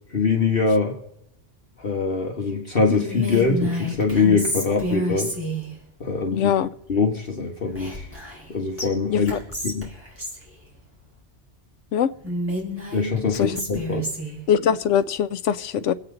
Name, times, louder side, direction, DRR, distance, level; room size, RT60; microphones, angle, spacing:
voice 1, 0.1-1.0 1.8-5.3 6.0-6.5 6.9-8.1 8.5-9.3 9.6-9.9 12.9-14.1, left 4 dB, 50° left, 1.6 m, -23 dB
Whispering, 2.9-5.7 7.7-8.5 8.8-8.9 9.3-10.4 12.2-14.4, equal, 10° right, 4.3 m, -29 dB
voice 2, 6.3-6.7 9.1-9.4 11.9-12.1 13.3-13.5 14.5-15.9, left 9 dB, 85° left, 1.0 m, -22 dB
25.5 x 8.6 x 3.8 m
omnidirectional pair, 1.2 m